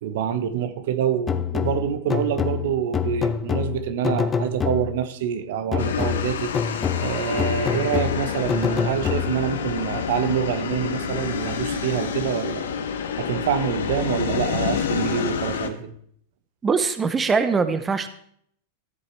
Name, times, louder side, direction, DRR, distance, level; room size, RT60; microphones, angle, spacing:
voice 1, 0.0-12.7 13.2-15.9, right 9 dB, 70° right, 11 dB, 1.0 m, -26 dB
sound 1, 1.3-5.1 5.7-9.6, left 7 dB, 20° left, 0.6 m, -26 dB
sound 2, 5.8-15.7, left 7 dB, 90° left, 1.2 m, -28 dB
voice 2, 16.6-18.1, right 5 dB, 15° right, 10 dB, 0.7 m, -22 dB
13.5 x 7.3 x 4.6 m, 0.67 s
supercardioid pair, 135°, 0 cm